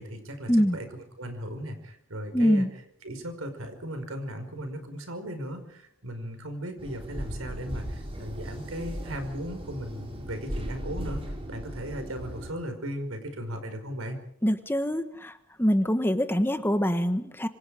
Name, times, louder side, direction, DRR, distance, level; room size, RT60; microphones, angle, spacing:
voice 1, 0.0-2.7 3.0-11.2 11.5-14.2, equal, 75° right, 7 dB, 5.4 m, -37 dB
voice 2, 2.3-2.7 14.4-15.3 15.6-17.5, equal, 10° left, 9 dB, 1.3 m, -24 dB
sound 1, 6.8-12.5, equal, 25° right, 6.0 m, -37 dB
27.5 x 26.0 x 5.1 m, 0.72 s
head